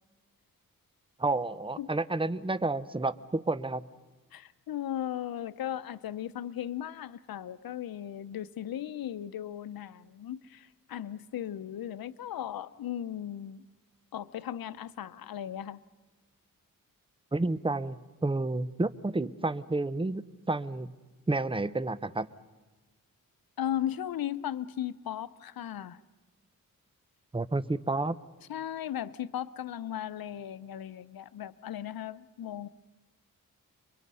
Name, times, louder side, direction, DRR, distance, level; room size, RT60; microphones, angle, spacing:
voice 1, 1.2-3.8 17.3-20.9 21.3-22.3 27.3-28.1, right 2 dB, 15° right, 15 dB, 0.8 m, -30 dB
voice 2, 4.3-13.6 14.1-15.8 23.6-26.0 28.5-32.7, left 11 dB, 85° left, 15 dB, 0.8 m, -37 dB
30.0 x 23.5 x 5.5 m, 1.2 s
cardioid pair, 85°, 34 cm